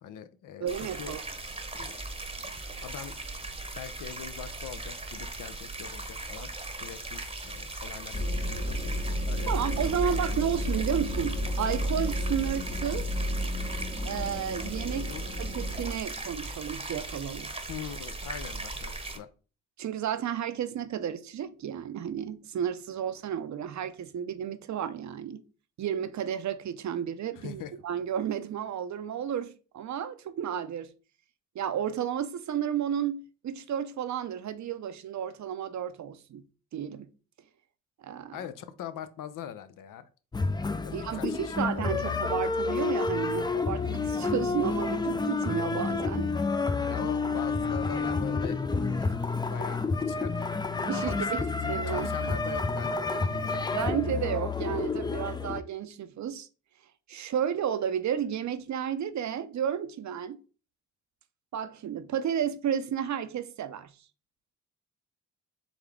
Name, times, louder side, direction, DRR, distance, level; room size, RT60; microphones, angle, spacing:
voice 1, 0.0-0.7 0.9-1.1 1.8-2.0 2.4-3.2 3.8-6.5 6.8-8.9 9.2-10.2 12.4-12.5 14.9-15.2 17.7-19.3 27.4-27.7 38.3-40.1 40.8-42.5 46.9-50.5 50.9-53.8, left 9 dB, 70° left, 0.6 m, -42 dB
voice 2, 0.6-1.2 9.5-13.1 14.0-15.1 15.4-17.5 19.8-25.4 25.8-30.9 31.5-36.4 36.7-37.1 38.0-38.4 40.9-46.3 49.0-49.1 49.6-49.7 50.8-51.4 51.7-52.1 53.8-56.5 57.1-60.4 61.5-63.9, right 9 dB, 55° right, 0.6 m, -32 dB
sound 1, 0.7-19.2, right 2 dB, 15° right, 0.9 m, -39 dB
sound 2, 8.1-15.9, equal, 30° left, 1.5 m, -32 dB
sound 3, 40.3-55.6, left 4 dB, 15° left, 0.4 m, -29 dB
3.9 x 3.5 x 3.3 m
supercardioid pair, 50°, 33 cm